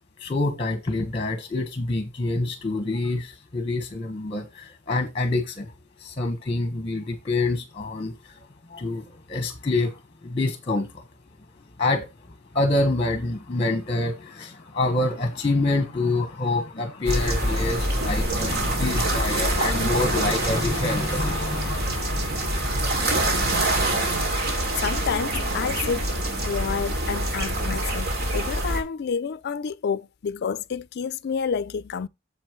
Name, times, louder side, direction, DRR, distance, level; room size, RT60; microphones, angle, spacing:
voice 1, 0.2-5.7 6.0-11.1 11.8-23.3, left 2 dB, 30° left, 1.3 m, -27 dB
sound 1, 17.0-28.8, right 1 dB, 55° right, 2.6 m, -25 dB
voice 2, 24.8-26.1 26.4-32.1, left 6 dB, 55° left, 0.4 m, -29 dB
8.5 x 7.2 x 3.1 m
head